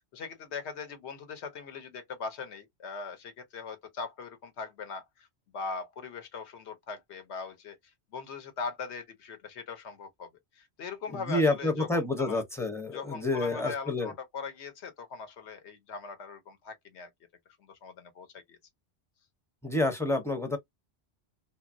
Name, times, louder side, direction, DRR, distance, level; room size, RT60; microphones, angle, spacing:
voice 1, 0.1-5.3 5.5-7.8 8.1-10.3 10.5-12.4 12.9-17.1 17.6-18.6, left 5 dB, 80° left, 1.1 m, -40 dB
voice 2, 11.1-14.1 19.6-20.6, left 2 dB, 5° left, 0.5 m, -28 dB
2.9 x 2.5 x 2.5 m
omnidirectional pair, 1.1 m